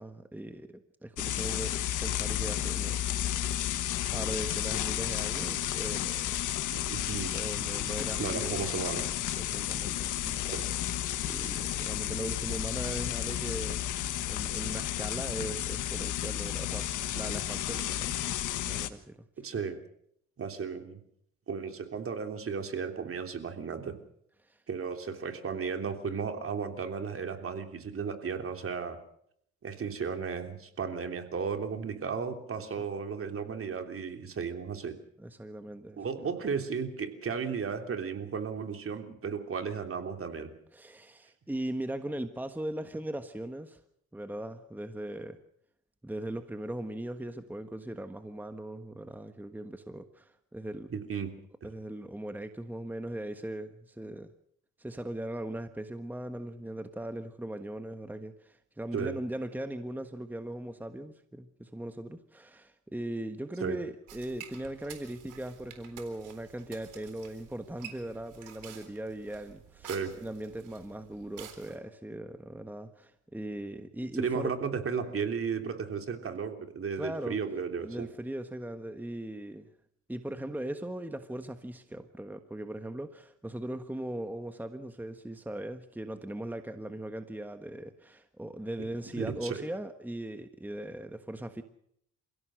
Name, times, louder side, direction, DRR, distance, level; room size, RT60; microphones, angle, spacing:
voice 1, 0.0-3.1 4.1-6.8 7.3-8.7 9.4-10.5 11.3-13.8 14.3-18.2 18.7-19.2 24.4-24.6 32.8-32.9 35.2-36.3 40.7-43.8 44.1-45.4 46.0-50.9 51.6-54.3 54.8-69.9 70.2-74.5 77.0-77.4 77.8-79.7 80.1-91.6, right 1 dB, 5° right, 8 dB, 1.4 m, -39 dB
sound 1, 1.2-18.9, left 12 dB, 80° left, 1.5 m, -32 dB
sound 2, 2.6-2.8 3.5-3.8 4.4-4.7 5.4-5.8 6.3-6.6 7.2-7.5 8.0-8.3 9.0-9.3 10.2-10.6 11.5-11.7, left 2 dB, 10° left, 3.2 m, -48 dB
voice 2, 6.7-7.3 7.8-7.9 8.2-9.1 10.5-10.6 19.4-19.8 20.4-21.0 21.5-23.9 24.7-29.0 29.6-34.9 36.0-40.5 50.9-51.3 58.9-59.2 63.6-63.8 69.9-70.1 74.1-78.1 89.1-89.6, right 6 dB, 45° right, 6 dB, 3.3 m, -34 dB
sound 3, 64.1-71.8, right 10 dB, 85° right, 3.9 m, -50 dB
29.5 x 16.5 x 6.4 m, 0.72 s
cardioid pair, 90°, 30 cm